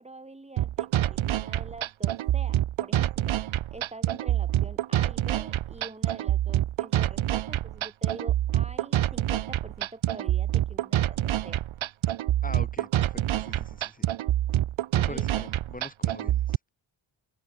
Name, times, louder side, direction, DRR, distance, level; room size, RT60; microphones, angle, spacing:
voice 1, 0.0-3.4 3.7-11.6 15.1-15.4, right 2 dB, 15° right, 1.5 m, -45 dB
sound 1, 0.6-16.6, right 12 dB, 70° right, 0.7 m, -26 dB
voice 2, 12.4-14.1 14.9-16.6, left 2 dB, 15° left, 3.7 m, -43 dB
cardioid pair, 75°, 50 cm